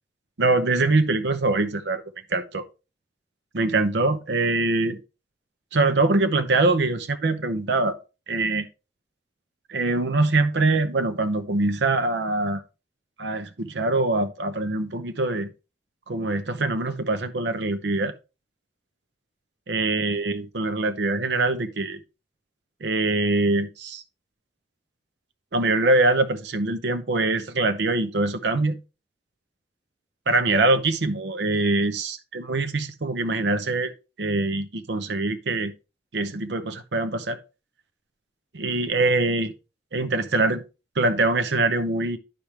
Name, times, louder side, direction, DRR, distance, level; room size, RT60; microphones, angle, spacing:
voice 1, 0.4-2.0 2.3-2.6 3.5-5.0 5.7-8.0 8.3-8.7 9.7-12.6 13.2-15.5 16.1-18.1 19.7-22.0 22.8-24.0 25.5-28.8 30.3-33.9 34.2-35.7 36.1-37.4 38.5-39.5 39.9-40.6 41.0-42.2, right 2 dB, 75° right, 0.7 m, -23 dB
10.0 x 4.9 x 3.0 m
head